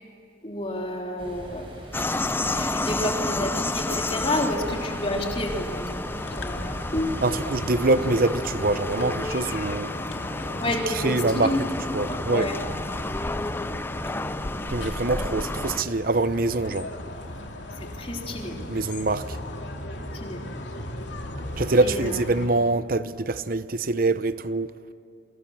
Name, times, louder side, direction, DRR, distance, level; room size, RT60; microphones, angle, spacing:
voice 1, 0.4-1.7 2.3-5.9 6.4-6.6 6.9-7.1 10.6-11.6 11.9-12.6 17.8-18.6 20.0-20.4 21.8-22.3, left 1 dB, 30° left, 3.5 m, -30 dB
sound 1, 1.2-9.1, equal, 30° right, 6.5 m, -41 dB
sound 2, 1.9-15.8, left 2 dB, 10° left, 0.5 m, -31 dB
sound 3, 6.2-22.5, left 1 dB, 75° left, 2.7 m, -37 dB
voice 2, 7.2-9.9 11.0-11.5 11.9-12.5 14.7-16.9 18.7-19.3 21.6-24.7, right 2 dB, 50° right, 0.8 m, -24 dB
29.0 x 25.0 x 7.4 m
head